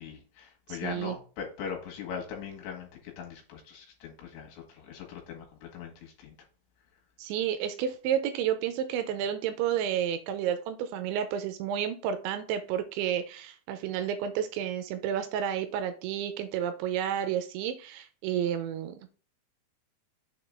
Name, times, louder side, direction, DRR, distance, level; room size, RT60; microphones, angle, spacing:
voice 1, 0.0-2.9 3.2-5.5 5.7-6.3, left 6 dB, 75° left, 3.6 m, -40 dB
voice 2, 0.7-1.2 7.2-19.1, right 9 dB, 85° right, 2.9 m, -31 dB
7.0 x 3.8 x 3.6 m
omnidirectional pair, 5.5 m